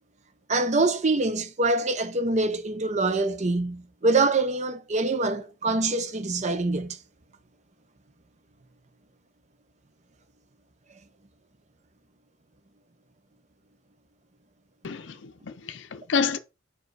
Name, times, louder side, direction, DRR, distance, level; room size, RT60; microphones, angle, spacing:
voice 1, 0.5-7.0, right 3 dB, 35° right, 0.7 m, -25 dB
voice 2, 14.8-16.4, left 5 dB, 65° left, 0.6 m, -29 dB
5.3 x 4.8 x 4.6 m
head